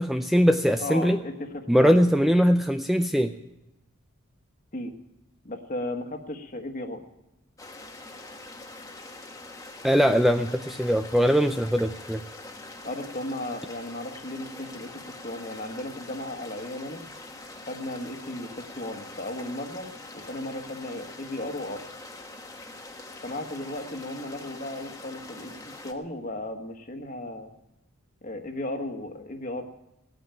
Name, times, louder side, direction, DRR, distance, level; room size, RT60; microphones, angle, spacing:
voice 1, 0.0-1.2 1.7-3.3 9.8-12.2, equal, ahead, 6 dB, 0.5 m, -21 dB
voice 2, 0.8-2.0 4.7-4.9 5.4-7.0 12.8-17.0 17.7-19.9 20.1-21.8 23.2-25.5 25.8-27.5 28.2-29.7, left 1 dB, 35° left, 5 dB, 1.6 m, -35 dB
sound 1, 7.6-25.9, left 2 dB, 15° left, 1.3 m, -44 dB
17.5 x 9.2 x 9.0 m, 0.92 s
head